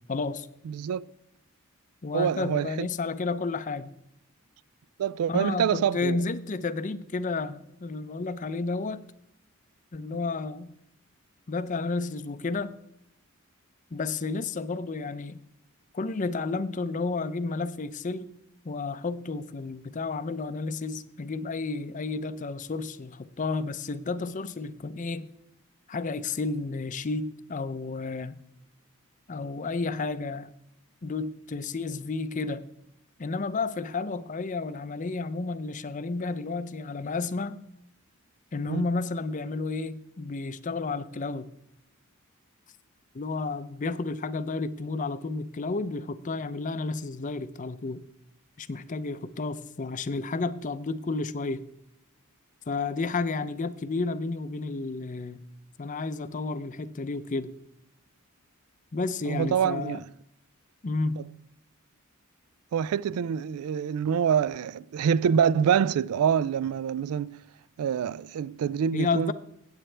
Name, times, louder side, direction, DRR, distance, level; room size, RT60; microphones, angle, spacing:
voice 1, 0.1-0.5 2.0-3.9 5.3-9.0 9.9-10.7 11.5-12.7 13.9-15.4 15.9-18.3 18.6-25.3 25.9-28.4 29.3-30.5 31.0-32.6 33.2-37.6 38.5-41.5 43.1-48.0 48.6-51.6 52.7-55.4 55.8-57.5 58.9-60.0 60.8-61.2 68.9-69.3, left 3 dB, 35° left, 0.5 m, -31 dB
voice 2, 0.7-1.1 2.1-2.9 5.0-6.2 38.7-38.8 59.3-60.1 61.2-61.3 62.7-67.4 67.8-69.3, right 8 dB, 80° right, 0.3 m, -26 dB
16.5 x 8.1 x 3.3 m
head